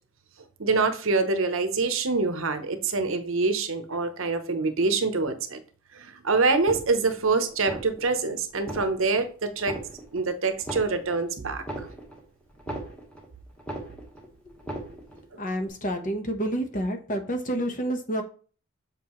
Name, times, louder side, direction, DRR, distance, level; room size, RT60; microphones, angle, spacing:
voice 1, 0.6-5.6 5.9-9.8 10.1-11.9 15.3-15.4, right 3 dB, 65° right, 0.9 m, -25 dB
sound 1, 6.5-7.2 7.6-8.2 8.5-9.3 9.6-10.3 10.5-13.3 13.6-14.3 14.5-15.2 15.6-15.7, right 1 dB, 5° left, 1.3 m, -38 dB
voice 2, 15.4-18.2, right 1 dB, 35° left, 1.1 m, -29 dB
7.4 x 5.4 x 3.1 m
head